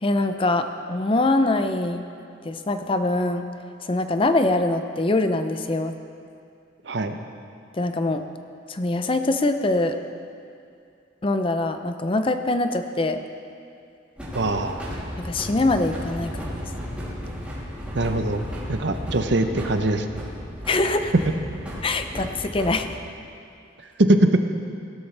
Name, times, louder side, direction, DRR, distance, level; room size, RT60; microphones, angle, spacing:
voice 1, 0.0-2.1 2.4-3.5 3.8-5.9 7.8-8.2 8.7-10.0 11.2-13.2 15.2-16.6 20.7-21.1 21.8-22.9, left 2 dB, 25° left, 8 dB, 0.5 m, -23 dB
voice 2, 6.9-7.2 14.3-14.8 17.9-18.4 18.7-20.2 24.0-24.4, right 1 dB, 60° right, 7 dB, 0.7 m, -22 dB
sound 1, 14.2-22.8, equal, 5° right, 2.9 m, -34 dB
17.0 x 12.5 x 3.3 m, 2.4 s
head